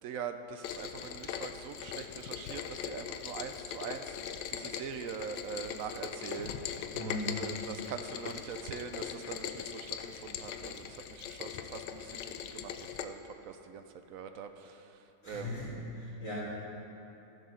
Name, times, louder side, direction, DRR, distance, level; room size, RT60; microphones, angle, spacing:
voice 1, 0.0-6.7 7.0-13.8 14.1-15.7, right 7 dB, 70° right, 7 dB, 0.8 m, -43 dB
Rain, 0.6-13.1, left 8 dB, 85° left, 1.2 m, -40 dB
voice 2, 6.9-7.4 15.2-16.3, left 1 dB, 50° left, -11 dB, 3.2 m, -38 dB
13.0 x 7.6 x 6.3 m, 2.9 s
omnidirectional pair, 1.9 m